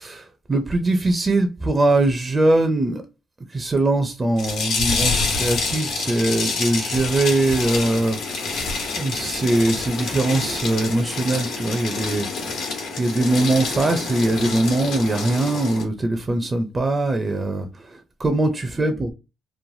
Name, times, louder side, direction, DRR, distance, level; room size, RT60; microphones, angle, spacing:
voice 1, 0.0-3.0 3.5-8.5 8.9-12.3 13.0-19.1, right 2 dB, 25° right, 0.5 m, -22 dB
sound 1, 4.4-15.8, left 4 dB, 85° left, 1.1 m, -27 dB
3.1 x 2.1 x 2.6 m
cardioid pair, 90°, 0 cm